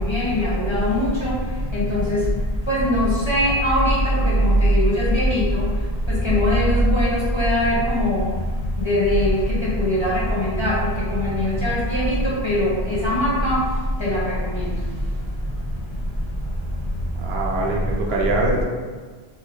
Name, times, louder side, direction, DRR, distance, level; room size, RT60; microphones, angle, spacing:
voice 1, 0.0-1.3 1.7-2.2 2.7-4.0 4.3-5.6 6.1-8.3 8.8-10.8 11.1-12.2 12.4-13.6 14.0-14.6, equal, 35° left, -8 dB, 0.5 m, -20 dB
voice 2, 17.2-18.6, right 2 dB, 75° right, -1 dB, 0.8 m, -23 dB
2.8 x 2.5 x 3.1 m, 1.5 s
omnidirectional pair, 1.0 m